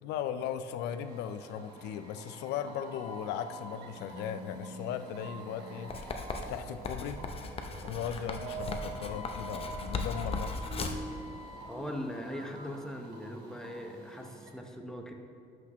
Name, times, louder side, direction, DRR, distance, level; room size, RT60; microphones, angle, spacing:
voice 1, 0.0-5.9 6.5-7.2 7.8-10.7, left 9 dB, 80° left, 10 dB, 0.4 m, -37 dB
sound 1, 0.9-12.7, right 4 dB, 30° right, 1.1 m, -47 dB
sound 2, 0.9-14.5, equal, 85° right, 1.2 m, -49 dB
Writing, 5.9-11.1, left 3 dB, 35° left, 0.7 m, -38 dB
voice 2, 11.7-15.1, equal, 5° left, 2 dB, 0.8 m, -40 dB
11.5 x 6.2 x 3.0 m, 2.5 s
cardioid pair, 110°, 17 cm